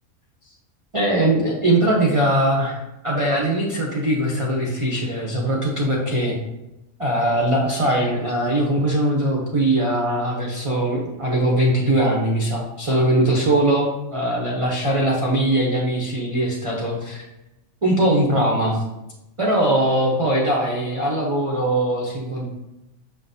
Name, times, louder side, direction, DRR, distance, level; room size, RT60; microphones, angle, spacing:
voice 1, 0.9-6.3 7.0-17.2 17.8-18.8 19.4-22.4, right 1 dB, 30° right, -2 dB, 0.6 m, -21 dB
6.7 x 5.7 x 2.7 m, 0.97 s
omnidirectional pair, 1.5 m